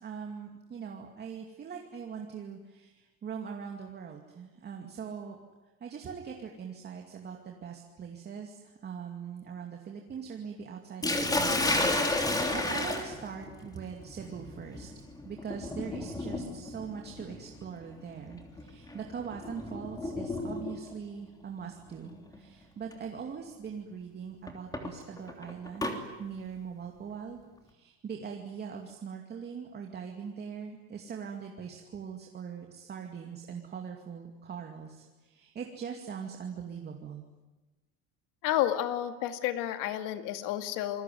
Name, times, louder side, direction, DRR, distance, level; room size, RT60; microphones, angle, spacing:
voice 1, 0.0-5.4 5.8-14.9 15.2-27.4 27.6-37.3, right 6 dB, 30° right, 2 dB, 2.5 m, -41 dB
Sink (filling or washing), 11.0-21.0 22.1-22.4 22.9-23.0 24.5-26.0, left 2 dB, 10° left, 3.3 m, -33 dB
voice 2, 38.4-41.0, left 12 dB, 75° left, 8 dB, 2.2 m, -31 dB
27.5 x 21.0 x 9.5 m, 1.2 s
cardioid pair, 150°, 33 cm